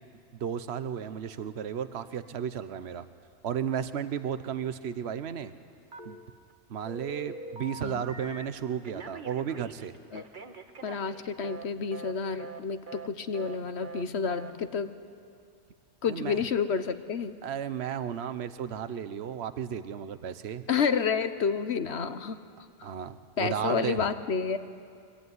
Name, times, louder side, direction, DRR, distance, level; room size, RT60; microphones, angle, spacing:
voice 1, 0.4-3.1 3.4-5.5 6.0-6.2 6.7-9.9 16.1-16.4 17.4-20.7 22.8-24.0, right 8 dB, 70° right, 12 dB, 1.1 m, -34 dB
Telephone, 5.9-6.5 6.9-8.5 8.8-11.7 11.9-12.1 12.4-12.6 12.9-13.1 13.3-13.6 13.8-14.0 14.3-14.5, right 3 dB, 45° right, 1.4 m, -43 dB
voice 2, 10.8-14.9 16.0-17.4 20.7-22.4 22.8-22.9 23.4-24.6, left 6 dB, 75° left, 10 dB, 1.3 m, -30 dB
24.0 x 24.0 x 9.6 m, 2.3 s
omnidirectional pair, 1.1 m